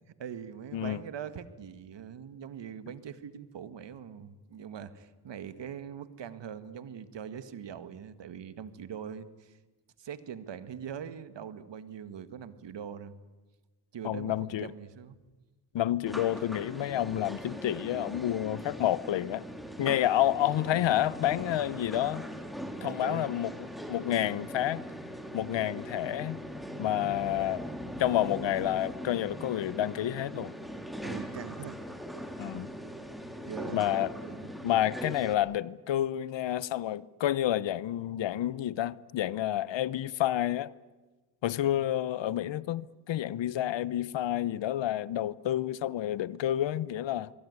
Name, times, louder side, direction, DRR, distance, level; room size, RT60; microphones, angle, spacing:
voice 1, 0.2-9.6 10.0-13.2 13.9-14.3 14.6-15.2 22.8-23.3 31.0-31.8 32.1-32.3 33.4-33.9 34.2-34.5, right 8 dB, 60° right, 1.9 m, -42 dB
voice 2, 14.0-14.7 15.7-19.4 19.8-22.3 22.8-24.8 25.3-26.4 26.8-27.7 28.0-30.5 32.4-32.7 33.7-34.1 34.6-40.7 41.4-47.3, left 12 dB, 60° left, 0.9 m, -29 dB
sound 1, 16.1-35.3, equal, ahead, 3.5 m, -40 dB
24.0 x 22.5 x 9.7 m
cardioid pair, 75°, 49 cm